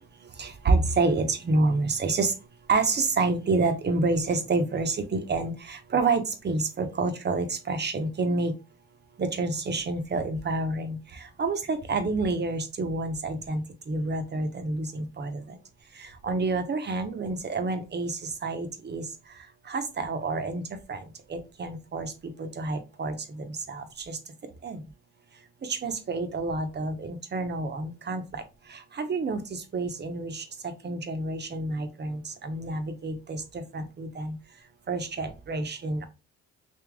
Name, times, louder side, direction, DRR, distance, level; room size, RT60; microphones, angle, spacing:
voice 1, 0.4-2.3 2.7-8.5 9.2-11.0 11.4-13.6 13.9-15.4 16.2-18.1 18.4-19.0 19.7-20.6 20.9-21.0 21.3-22.1 22.4-23.1 23.7-24.2 24.6-24.8 25.7-28.4 29.0-29.4 29.7-30.4 30.8-33.4 33.7-34.3 34.9-36.0, right 3 dB, 35° right, 8 dB, 0.8 m, -28 dB
3.5 x 2.9 x 3.4 m, 0.29 s
cardioid pair, 90°, 30 cm